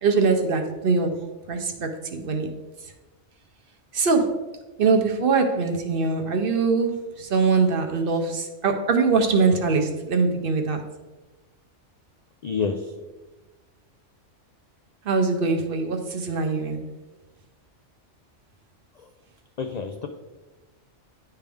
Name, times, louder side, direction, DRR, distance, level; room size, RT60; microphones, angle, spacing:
voice 1, 0.0-2.5 3.9-4.4 4.8-10.9 15.0-16.9, right 4 dB, 55° right, 4 dB, 0.8 m, -23 dB
voice 2, 12.4-12.9 19.0-19.1 19.6-20.1, left 5 dB, 70° left, 4 dB, 0.3 m, -28 dB
10.0 x 3.4 x 3.4 m, 1.1 s
omnidirectional pair, 1.2 m